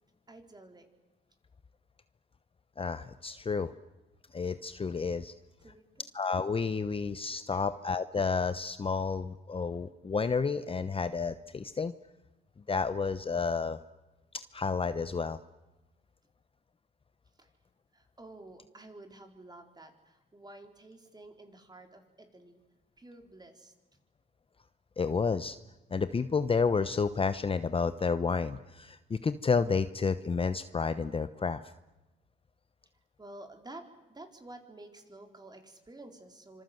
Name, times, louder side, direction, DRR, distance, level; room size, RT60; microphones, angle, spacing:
voice 1, 0.3-0.9 5.6-6.1 7.5-7.6 17.4-17.5 17.9-22.6 23.0-23.7 33.2-36.6, right 2 dB, 20° right, 5 dB, 4.3 m, -51 dB
voice 2, 2.8-3.7 4.3-5.3 6.1-11.9 12.7-13.8 14.3-15.4 25.0-25.6 25.9-31.6, left 5 dB, 25° left, 12 dB, 0.9 m, -30 dB
26.0 x 26.0 x 7.9 m, 1.0 s
cardioid pair, 90°, 20 cm